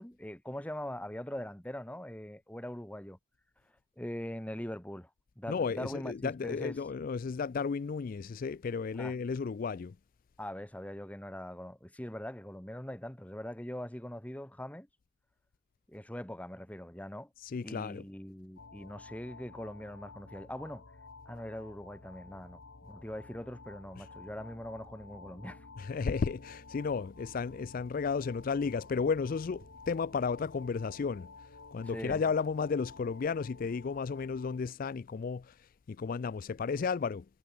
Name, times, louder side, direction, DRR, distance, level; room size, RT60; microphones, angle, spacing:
voice 1, 0.0-3.2 4.0-5.1 5.4-6.8 8.9-9.1 10.4-14.9 15.9-17.3 17.6-20.9 21.2-25.7 31.8-32.2, left 1 dB, 5° left, 1.1 m, -42 dB
voice 2, 5.5-9.9 17.4-18.0 25.8-31.3 31.7-37.3, left 5 dB, 40° left, 0.3 m, -33 dB
sound 1, 18.6-34.6, left 3 dB, 65° left, 1.3 m, -52 dB
sound 2, 23.6-32.3, right 1 dB, 45° right, 1.2 m, -64 dB
head